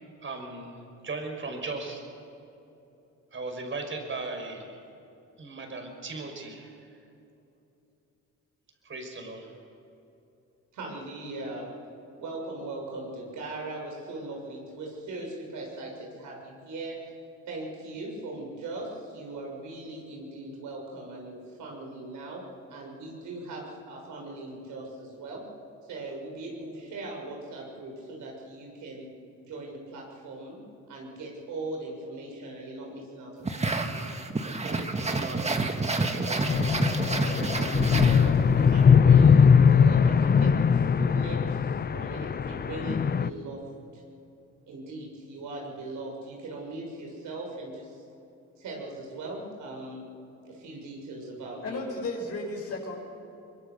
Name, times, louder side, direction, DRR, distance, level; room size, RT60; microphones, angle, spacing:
voice 1, 0.2-2.0 3.3-4.8 5.4-6.8 8.8-9.5 35.2-35.4 35.9-36.7, right 3 dB, 40° right, 4 dB, 5.8 m, -37 dB
voice 2, 10.7-11.7 12.2-17.0 17.5-22.4 22.7-25.4 25.9-29.1 29.4-30.6 30.9-34.1 34.6-36.3 38.1-43.7 43.9-44.0 44.7-48.0 48.6-50.1 50.5-51.8, right 2 dB, 80° right, 0 dB, 6.9 m, -39 dB
sound 1, 33.4-38.7, right 3 dB, 20° right, 1.9 m, -29 dB
sound 2, 36.5-43.3, left 6 dB, 30° left, 0.7 m, -21 dB
voice 3, 51.6-53.0, left 2 dB, 55° left, -2 dB, 6.1 m, -34 dB
24.0 x 22.5 x 6.9 m, 2.8 s
cardioid pair, 90°, 30 cm